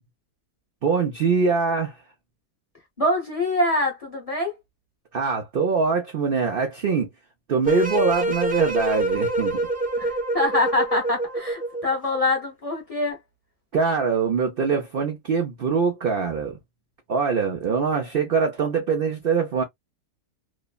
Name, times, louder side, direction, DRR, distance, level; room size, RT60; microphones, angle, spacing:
voice 1, 0.8-2.0 5.1-7.1 7.5-9.6 13.7-16.6 17.1-19.6, right 5 dB, 75° right, 0.5 m, -23 dB
voice 2, 3.0-4.5 10.0-13.2, left 2 dB, 30° left, 0.7 m, -24 dB
sound 1, 7.6-12.0, right 1 dB, 10° right, 0.4 m, -26 dB
3.1 x 2.0 x 2.3 m
omnidirectional pair, 1.7 m